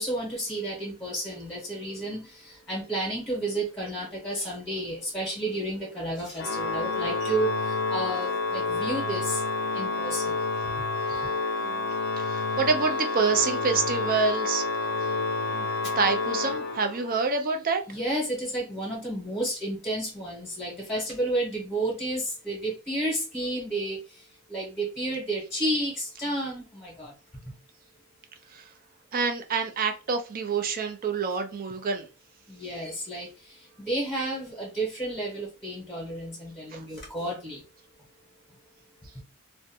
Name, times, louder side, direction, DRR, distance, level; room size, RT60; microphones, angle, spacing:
voice 1, 0.0-9.4 9.7-10.4 17.9-27.1 27.5-27.6 32.5-37.6, right 1 dB, 10° left, 0.9 m, -31 dB
Organ, 6.4-17.3, left 3 dB, 50° left, 0.3 m, -29 dB
voice 2, 11.6-11.9 12.2-14.6 15.5-15.7 16.0-17.8 28.5-28.7 29.1-32.1 36.7-36.8, right 4 dB, 40° right, 0.5 m, -27 dB
2.5 x 2.2 x 2.7 m
head